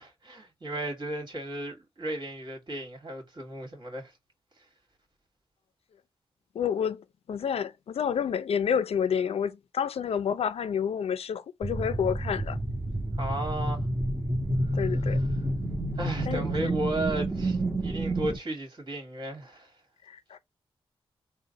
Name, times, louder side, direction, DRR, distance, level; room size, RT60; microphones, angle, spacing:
voice 1, 0.0-4.1 13.2-13.8 16.0-19.7, right 1 dB, 50° right, 2.2 m, -34 dB
voice 2, 6.5-12.6 14.7-15.2 16.2-16.7 20.1-20.4, left 7 dB, 80° left, 0.6 m, -29 dB
sound 1, 11.6-18.4, right 1 dB, 20° right, 1.2 m, -29 dB
3.7 x 2.3 x 4.1 m
cardioid pair, 70°, 10 cm